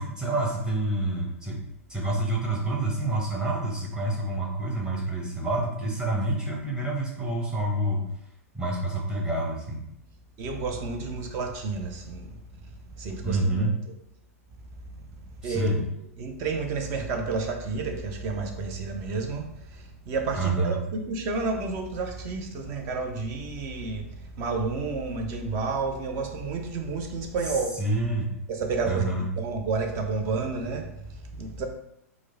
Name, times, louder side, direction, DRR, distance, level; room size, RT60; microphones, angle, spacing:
voice 1, 0.0-1.6 1.9-8.0 8.5-9.8 13.2-13.7 15.4-15.8 20.3-20.8 27.4-28.3 28.8-29.2, right 2 dB, 10° right, -3 dB, 1.2 m, -28 dB
voice 2, 10.4-12.4 13.0-13.7 15.4-27.8 28.5-31.6, right 4 dB, 35° right, 4 dB, 0.7 m, -31 dB
4.6 x 2.2 x 3.9 m, 0.77 s
figure-of-eight pair, 100°, 8 cm